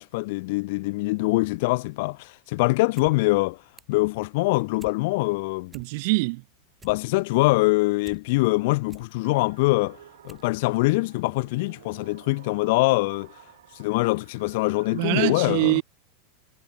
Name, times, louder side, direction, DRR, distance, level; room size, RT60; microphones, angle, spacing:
voice 1, 0.0-3.6 3.9-5.7 6.8-10.0 10.2-13.3 13.7-15.8, left 23 dB, 60° left, 0.7 m, -24 dB
sound 1, 2.9-3.1 3.4-4.0 4.4-5.0 5.4-5.5 5.7-6.3 6.6-8.2 8.6-9.1 9.7-9.8 10.2-10.5 10.8-10.9, right 5 dB, 15° right, 5.6 m, -50 dB
voice 2, 5.7-6.4 14.9-15.8, right 27 dB, 60° right, 0.6 m, -24 dB
sound 2, 9.2-15.1, right 12 dB, 85° right, 2.6 m, -52 dB
supercardioid pair, 140°, 0 cm